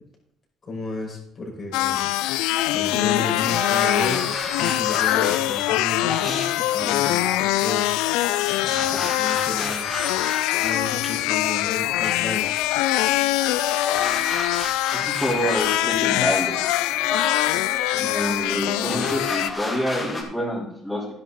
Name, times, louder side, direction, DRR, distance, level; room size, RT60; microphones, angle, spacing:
voice 1, 0.6-2.1 2.7-4.3 4.6-7.9 8.6-9.9 10.6-12.5 18.8-19.1, left 2 dB, 45° left, -1 dB, 5.7 m, -33 dB
sound 1, 1.7-19.5, left 16 dB, 80° left, 0.4 m, -23 dB
sound 2, 2.5-20.2, left 2 dB, 25° left, 3.1 m, -33 dB
voice 2, 14.9-16.6 17.9-21.1, equal, 10° left, -6 dB, 4.2 m, -27 dB
11.0 x 10.5 x 4.2 m, 0.77 s
supercardioid pair, 65°, 0 cm